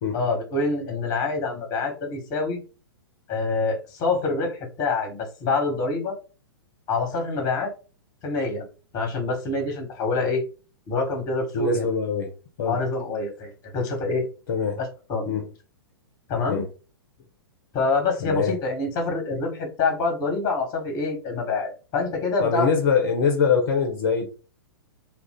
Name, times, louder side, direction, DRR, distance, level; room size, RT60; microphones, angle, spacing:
voice 1, 0.1-2.6 3.3-6.2 6.9-7.7 8.2-8.6 8.9-10.4 10.9-11.9 12.6-14.3 14.8-15.4 16.3-16.6 17.7-22.7, left 3 dB, 30° left, 1.3 m, -26 dB
voice 2, 11.5-12.3 12.6-12.8 14.5-14.8 15.3-15.5 16.5-16.7 18.2-18.5 22.4-24.3, left 5 dB, 50° left, 0.7 m, -23 dB
2.5 x 2.4 x 3.6 m
figure-of-eight pair, 110°, 13 cm